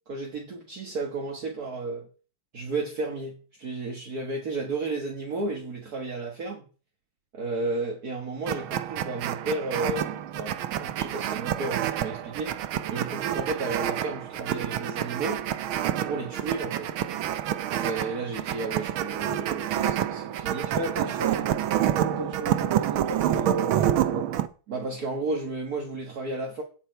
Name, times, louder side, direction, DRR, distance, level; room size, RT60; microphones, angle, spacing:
voice 1, 0.1-2.1 2.5-6.7 7.3-12.6 12.9-15.5 15.9-16.9 17.7-21.1 24.1-24.3 24.7-26.6, right 3 dB, 50° right, 2.1 m, -33 dB
sound 1, 8.5-24.5, right 11 dB, 90° right, 1.7 m, -28 dB
voice 2, 20.7-24.2, right 2 dB, 35° right, 2.7 m, -35 dB
17.5 x 7.3 x 4.6 m
omnidirectional pair, 2.2 m